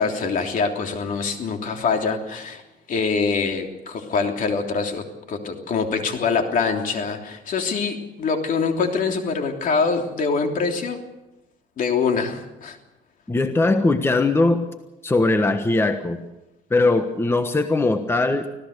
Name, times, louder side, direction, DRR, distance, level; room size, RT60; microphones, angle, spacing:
voice 1, 0.0-2.6 2.9-11.0 11.8-12.8, left 5 dB, 50° left, 4 dB, 3.2 m, -24 dB
voice 2, 13.3-14.7 15.0-16.2 16.7-18.5, left 2 dB, 15° left, 8 dB, 1.3 m, -20 dB
25.5 x 16.5 x 6.7 m, 0.98 s
cardioid pair, 110°, 17 cm